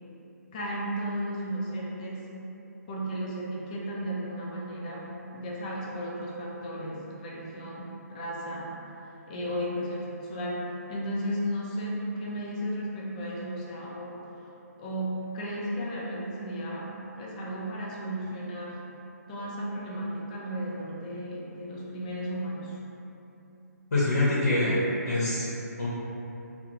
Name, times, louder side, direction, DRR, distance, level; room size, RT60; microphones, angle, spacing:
voice 1, 0.5-2.3 2.9-8.7 9.3-14.5 14.8-18.8 19.3-22.8, equal, 25° left, -4 dB, 0.4 m, -34 dB
voice 2, 23.9-24.8 25.0-25.5 25.8-25.9, left 2 dB, 60° left, -9 dB, 0.7 m, -24 dB
2.4 x 2.0 x 2.9 m, 3.0 s
hypercardioid pair, 150°, 9 cm